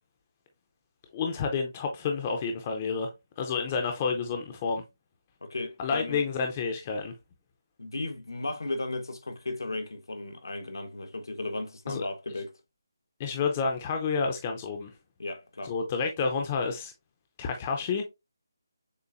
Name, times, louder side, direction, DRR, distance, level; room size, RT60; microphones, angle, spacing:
voice 1, 1.1-3.1 3.4-4.8 5.8-7.1 11.9-12.0 13.2-14.9 15.6-16.9 17.4-18.0, left 5 dB, 20° left, 0.5 m, -29 dB
voice 2, 5.4-6.2 7.8-12.5 15.2-15.7, left 2 dB, 85° left, 1.1 m, -35 dB
6.7 x 2.5 x 2.5 m
figure-of-eight pair, 170°, 2 cm